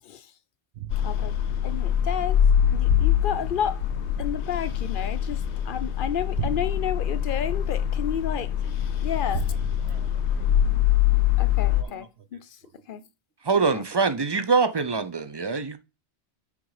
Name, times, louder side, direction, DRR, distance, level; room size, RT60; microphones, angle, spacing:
sound 1, 0.7-5.8 6.3-8.7 9.3-11.3 11.8-11.9, right 10 dB, 90° right, 1.0 m, -38 dB
sound 2, 0.9-11.8, left 10 dB, 80° left, 1.0 m, -24 dB
voice 1, 1.0-1.3 1.6-2.4 2.7-3.8 4.2-5.4 5.7-8.5 9.0-9.4 11.4-12.1 12.3-12.4 12.9-13.0, left 9 dB, 60° left, 0.6 m, -30 dB
voice 2, 8.3-9.0 9.5-10.6 11.7-13.0 13.5-14.0 15.4-15.5, right 6 dB, 65° right, 1.2 m, -50 dB
voice 3, 13.4-15.8, right 4 dB, 35° right, 0.4 m, -24 dB
7.0 x 3.7 x 4.8 m
omnidirectional pair, 1.1 m